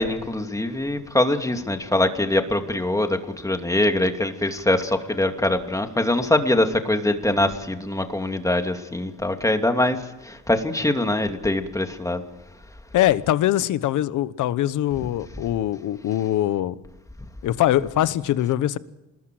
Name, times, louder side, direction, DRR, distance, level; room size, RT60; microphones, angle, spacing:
voice 1, 0.0-3.2 3.4-10.0 10.2-12.2, left 1 dB, 10° left, 2.7 m, -23 dB
voice 2, 12.9-16.7 17.4-18.8, left 13 dB, 80° left, 1.1 m, -22 dB
26.5 x 20.5 x 7.8 m
cardioid pair, 90°, 30 cm